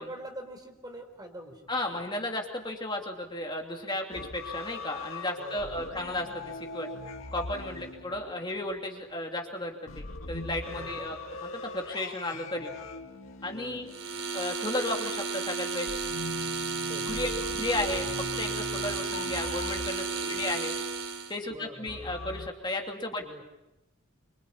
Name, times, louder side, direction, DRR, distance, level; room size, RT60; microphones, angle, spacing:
voice 1, 0.0-1.6 5.4-5.9 7.6-8.1 10.7-11.1 13.5-13.8 16.8-17.3 20.1-20.5 21.5-22.0 23.2-23.4, right 1 dB, 20° right, 4 dB, 4.2 m, -45 dB
voice 2, 1.7-6.4 6.7-6.9 7.3-12.7 13.4-13.9 14.3-15.9 17.1-17.3 17.6-20.7 21.3-23.4, left 1 dB, 20° left, 1 dB, 2.9 m, -34 dB
sound 1, 4.1-8.7 9.9-14.6 15.9-20.5 21.9-22.5, left 3 dB, 75° left, 1.9 m, -41 dB
sound 2, 13.9-21.4, right 4 dB, 80° right, 3.7 m, -33 dB
26.0 x 25.5 x 8.7 m, 0.96 s
head